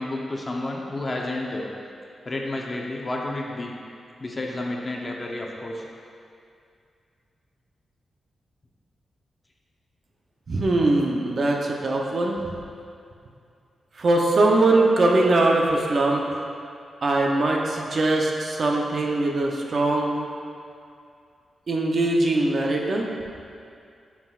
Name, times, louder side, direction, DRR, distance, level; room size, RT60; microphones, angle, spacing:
voice 1, 0.0-1.7 2.2-3.7 4.2-5.8, left 2 dB, 30° left, -1 dB, 0.8 m, -30 dB
voice 2, 10.5-12.4 14.0-16.3 17.0-20.2 21.7-23.1, right 2 dB, 50° right, 0 dB, 0.8 m, -21 dB
9.6 x 5.9 x 2.5 m, 2.4 s
wide cardioid pair, 110°, 0 cm